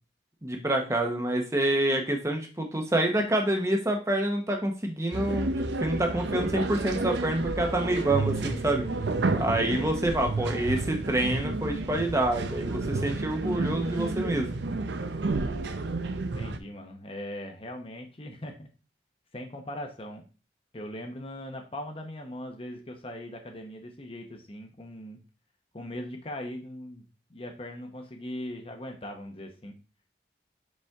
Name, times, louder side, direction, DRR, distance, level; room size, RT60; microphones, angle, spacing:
voice 1, 0.4-5.5 5.8-8.8 9.4-14.5, right 1 dB, 15° right, 3 dB, 0.8 m, -27 dB
sound 1, 5.1-16.6, right 2 dB, 75° right, 0.6 m, -31 dB
voice 2, 9.6-10.3 16.3-18.7 19.3-20.2 20.7-25.2 25.7-27.0 27.3-29.8, left 1 dB, 30° left, 4 dB, 0.9 m, -40 dB
5.3 x 5.1 x 3.5 m, 0.34 s
head